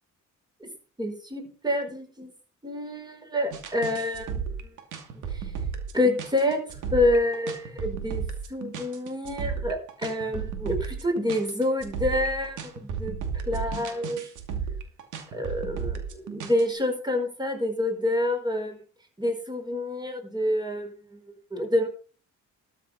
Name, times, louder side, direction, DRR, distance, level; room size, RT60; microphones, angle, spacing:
voice 1, 1.0-2.3 2.6-4.4 5.3-5.4 5.9-8.2 8.5-13.2 13.5-14.3 15.3-18.8 19.2-21.2 21.5-21.9, left 1 dB, 15° right, 5 dB, 5.0 m, -27 dB
sound 1, 3.5-16.6, right 6 dB, 85° right, 2.6 m, -34 dB
13.0 x 7.5 x 5.7 m, 0.39 s
cardioid pair, 90°, 30 cm